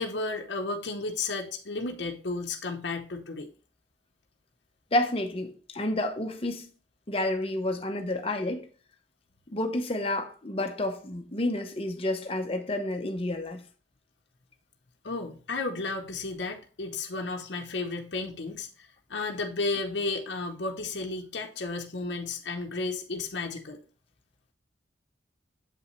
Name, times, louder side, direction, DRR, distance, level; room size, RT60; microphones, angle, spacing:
voice 1, 0.0-3.5 15.0-23.8, left 3 dB, 70° left, 0.9 m, -33 dB
voice 2, 4.9-6.7 7.1-8.7 9.5-13.6, left 1 dB, 30° left, 0.9 m, -30 dB
7.7 x 5.4 x 3.1 m
head